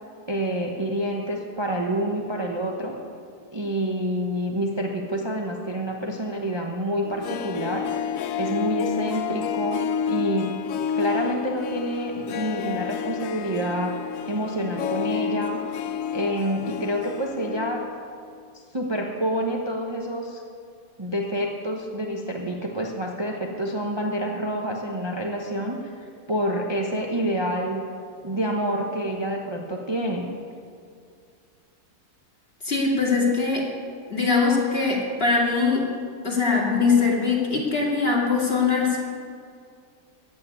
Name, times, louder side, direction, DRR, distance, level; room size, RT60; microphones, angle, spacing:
voice 1, 0.3-3.0 3.5-7.9 8.4-14.0 14.3-15.6 16.1-17.9 18.5-20.4 21.0-27.8 28.2-30.3, equal, 20° right, 0 dB, 1.0 m, -28 dB
Harp, 7.0-18.1 18.3-18.4, left 8 dB, 70° left, 1.0 m, -30 dB
voice 2, 32.6-33.7 34.1-35.9 36.2-39.0, left 4 dB, 40° left, -2 dB, 2.5 m, -22 dB
14.5 x 7.7 x 9.6 m, 2.3 s
omnidirectional pair, 1.7 m